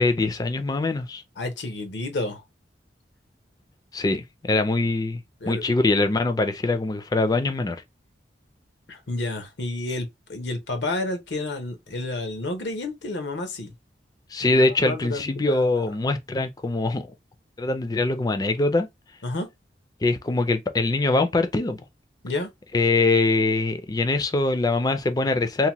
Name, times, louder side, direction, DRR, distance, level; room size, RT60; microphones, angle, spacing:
voice 1, 0.0-1.2 3.9-5.2 5.5-7.8 14.3-17.1 17.6-18.9 20.0-21.8 22.7-25.7, left 2 dB, 20° left, 0.4 m, -23 dB
voice 2, 1.4-2.4 5.4-5.6 8.9-13.7 14.4-15.9 19.2-19.5 22.2-22.5, left 2 dB, 80° left, 0.8 m, -30 dB
2.8 x 2.1 x 2.8 m
head